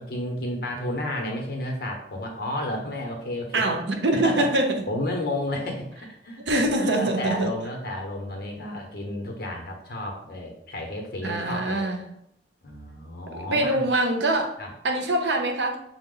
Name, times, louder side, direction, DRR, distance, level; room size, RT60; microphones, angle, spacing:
voice 1, 0.0-3.6 4.1-4.5 4.9-11.9 12.6-13.9 14.6-14.7, left 1 dB, 60° left, 1 dB, 1.0 m, -32 dB
voice 2, 3.5-4.7 6.5-7.5 11.2-12.0 13.3-14.6 14.8-15.8, right 1 dB, 85° right, 4 dB, 0.7 m, -24 dB
5.6 x 2.4 x 3.8 m, 0.76 s
head